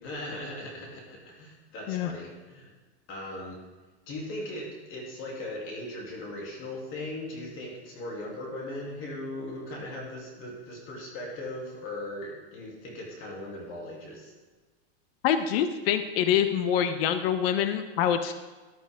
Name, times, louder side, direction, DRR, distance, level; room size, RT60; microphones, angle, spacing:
voice 1, 0.0-2.7 3.1-3.6 4.1-14.3, left 1 dB, 35° left, -2 dB, 3.1 m, -38 dB
voice 2, 15.2-18.3, left 9 dB, 60° left, 9 dB, 1.0 m, -25 dB
13.5 x 11.0 x 3.7 m, 1.3 s
supercardioid pair, 150°, 34 cm